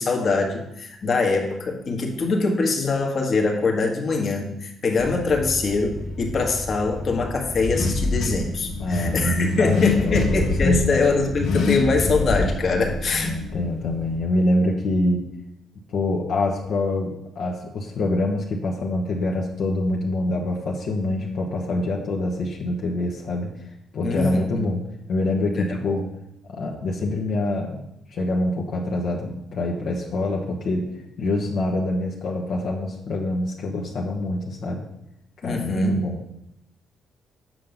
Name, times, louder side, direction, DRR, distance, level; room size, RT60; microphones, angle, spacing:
voice 1, 0.0-13.4 24.0-24.5 25.5-26.0 35.4-36.0, left 3 dB, 50° left, 1 dB, 1.5 m, -23 dB
Car / Accelerating revving vroom, 5.0-14.2, left 3 dB, 90° left, 1.7 m, -26 dB
voice 2, 8.8-10.3 10.6-11.1 13.1-15.2 15.9-23.5 23.9-24.8 25.1-26.0 26.5-27.8 28.1-30.9 31.2-34.8 35.4-36.2, left 2 dB, 65° left, -2 dB, 1.3 m, -25 dB
7.7 x 5.8 x 5.2 m, 0.80 s
cardioid pair, 90°, 0 cm